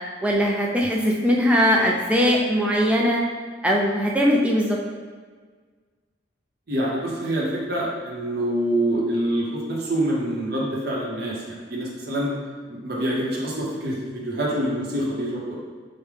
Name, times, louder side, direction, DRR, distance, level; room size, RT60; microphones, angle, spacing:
voice 1, 0.2-3.2 3.6-4.8, equal, 5° right, -2 dB, 0.4 m, -20 dB
voice 2, 6.7-12.3 12.7-15.5, right 1 dB, 55° right, -5 dB, 0.8 m, -26 dB
4.8 x 2.1 x 3.3 m, 1.5 s
head